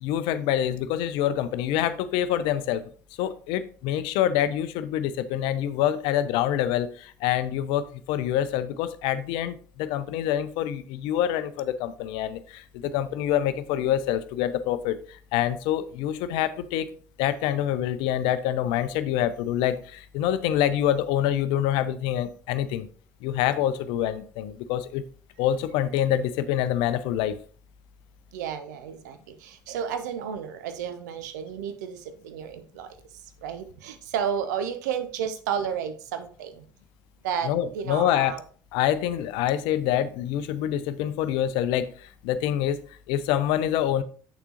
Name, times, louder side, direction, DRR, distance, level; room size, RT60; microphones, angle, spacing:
voice 1, 0.0-2.8 3.2-16.9 17.2-22.9 23.2-25.0 25.4-27.4 37.5-38.3 38.7-42.8 43.1-44.0, left 11 dB, 55° left, 13 dB, 0.6 m, -26 dB
voice 2, 28.3-36.6 37.2-38.4, right 8 dB, 65° right, 9 dB, 0.7 m, -32 dB
8.0 x 6.7 x 2.8 m, 0.43 s
figure-of-eight pair, 55°, 10 cm